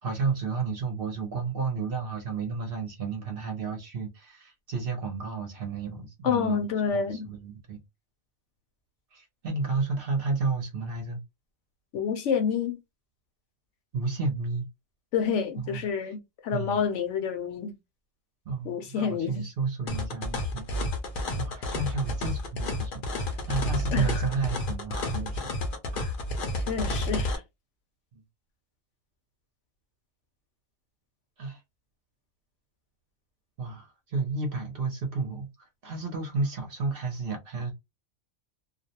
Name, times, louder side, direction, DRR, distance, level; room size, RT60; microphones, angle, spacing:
voice 1, 0.0-6.6 6.9-7.8 9.1-11.2 13.9-14.7 15.6-15.8 16.5-16.8 18.5-20.7 21.4-25.5 25.9-26.2 31.4-31.6 33.6-37.7, right 4 dB, 55° right, 0.7 m, -32 dB
voice 2, 6.2-7.3 11.9-12.8 15.1-17.7 18.6-19.4 23.9-24.2 26.0-26.1 26.7-27.4, left 6 dB, 70° left, 0.9 m, -28 dB
sound 1, 19.9-27.4, left 1 dB, 55° left, 0.6 m, -30 dB
2.4 x 2.0 x 2.7 m
omnidirectional pair, 1.3 m